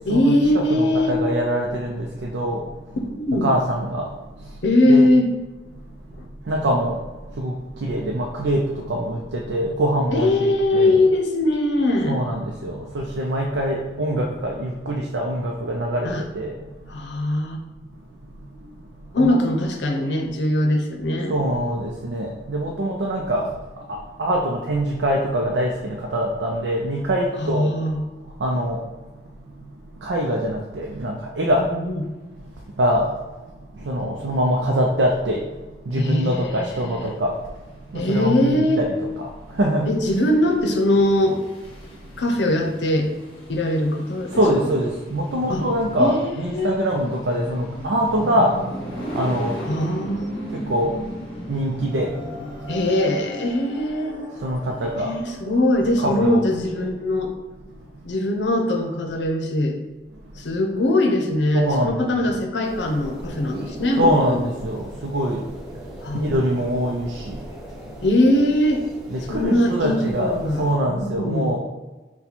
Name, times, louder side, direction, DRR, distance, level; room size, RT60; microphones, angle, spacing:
voice 1, 0.1-1.2 3.1-3.5 4.6-5.3 10.1-12.2 16.0-16.2 16.9-17.6 19.1-21.4 27.4-28.0 31.6-32.1 35.9-37.1 37.9-38.8 39.9-41.4 42.2-43.1 43.5-44.7 45.5-45.6 46.0-46.7 49.6-50.6 52.7-54.2 55.0-57.3 58.0-59.8 60.4-64.4 66.0-66.4 68.0-68.8 69.3-71.5, left 1 dB, 90° left, 3 dB, 0.6 m, -21 dB
voice 2, 0.7-3.0 3.4-4.6 4.9-5.1 6.2-11.0 12.1-16.9 18.4-19.4 21.3-27.7 28.4-29.1 29.4-31.7 32.6-33.2 33.5-37.5 37.9-39.0 39.2-39.9 44.3-48.7 49.0-49.7 50.5-51.0 51.4-52.7 54.4-55.1 56.0-56.4 57.7-58.0 60.3-60.4 61.5-62.3 64.0-65.8 66.1-67.5 69.1-71.6, equal, 85° right, -1 dB, 0.5 m, -24 dB
sound 1, 37.1-52.9, equal, 30° left, 1.3 m, -37 dB
sound 2, 48.6-56.6, equal, 50° right, 1.2 m, -39 dB
sound 3, 62.6-70.8, equal, 20° right, 0.8 m, -39 dB
4.0 x 2.2 x 4.4 m, 1.2 s
head